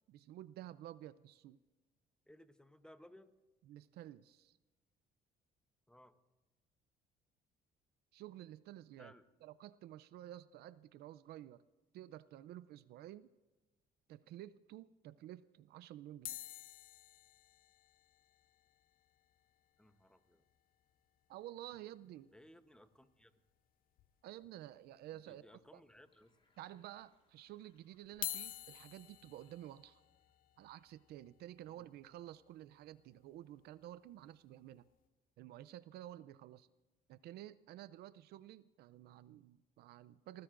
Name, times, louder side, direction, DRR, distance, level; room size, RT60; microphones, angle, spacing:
voice 1, 0.1-1.6 3.7-4.6 8.1-9.1 9.4-11.6 11.9-13.3 14.1-16.4 21.3-22.3 24.2-25.5 25.7-25.8 26.6-30.0 30.6-34.9 35.4-36.7 37.1-40.4, right 13 dB, 70° right, 16 dB, 0.5 m, -52 dB
voice 2, 2.3-3.3 5.9-6.2 9.0-9.2 19.8-20.4 22.3-23.3 25.3-26.4 31.8-31.9, left 1 dB, 5° left, 10 dB, 0.9 m, -61 dB
sound 1, 16.2-20.6 20.9-21.0 21.2-21.3 21.7-21.9 23.2-23.3 24.0-24.5 25.0-25.1 26.0-26.1 28.1-34.1 34.7-35.0, left 12 dB, 60° left, 0.5 m, -50 dB
Sink (filling or washing), 25.9-30.8, left 3 dB, 35° left, 4.7 m, -79 dB
30.0 x 15.0 x 2.5 m, 1.2 s
cardioid pair, 110°, 17 cm